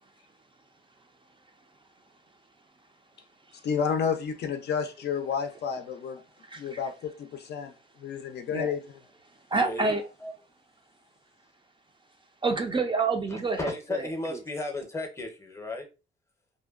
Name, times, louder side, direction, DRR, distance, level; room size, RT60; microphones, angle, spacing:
voice 1, 3.6-6.2 6.6-7.7 8.0-8.8, left 7 dB, 55° left, 0.4 m, -30 dB
voice 2, 6.4-6.8 8.5-8.7 9.5-10.0 12.4-14.4, right 3 dB, 25° right, 0.4 m, -28 dB
voice 3, 9.5-10.3 13.6-15.9, left 2 dB, 15° left, 0.7 m, -34 dB
2.6 x 2.1 x 2.3 m
cardioid pair, 90°, 20 cm